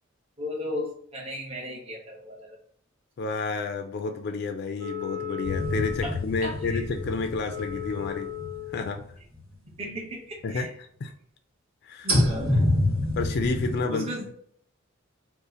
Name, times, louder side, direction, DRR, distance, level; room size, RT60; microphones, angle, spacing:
voice 1, 0.4-2.6 6.0-6.8 9.7-10.7 12.0-12.6 13.7-14.3, left 1 dB, 30° right, -2 dB, 0.7 m, -36 dB
voice 2, 3.2-8.3 8.7-9.0 10.4-10.7 11.0-11.1 11.8-12.1 13.2-14.1, left 4 dB, 50° left, 6 dB, 0.3 m, -30 dB
Wind instrument woodwind instrument, 4.8-8.9, left 10 dB, 70° right, 0.6 m, -37 dB
sound 1, 5.4-9.5 9.9-10.0 12.1-13.8, left 1 dB, 85° right, 1.4 m, -27 dB
2.7 x 2.4 x 3.8 m, 0.64 s
head